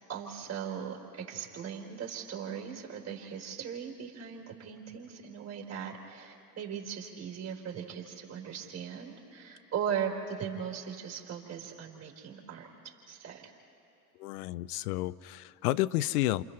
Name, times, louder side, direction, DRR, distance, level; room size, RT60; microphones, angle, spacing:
voice 1, 0.1-13.4, right 8 dB, 35° right, -1 dB, 4.0 m, -38 dB
voice 2, 14.2-16.4, left 16 dB, 75° left, 18 dB, 0.6 m, -31 dB
29.0 x 28.0 x 3.3 m, 2.8 s
hypercardioid pair, 85°, 47 cm